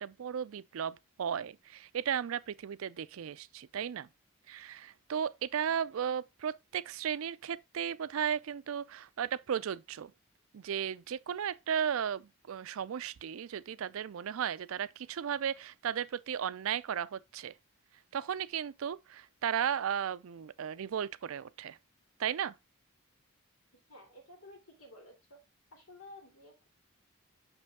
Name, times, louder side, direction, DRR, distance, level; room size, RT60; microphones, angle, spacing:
voice 1, 0.0-4.1 4.5-10.1 10.5-17.5 18.1-21.8 22.2-22.5, right 8 dB, 80° right, 0.4 m, -35 dB
voice 2, 23.9-25.4 25.7-26.7, left 1 dB, 85° left, 2.7 m, -53 dB
6.1 x 5.3 x 3.5 m
head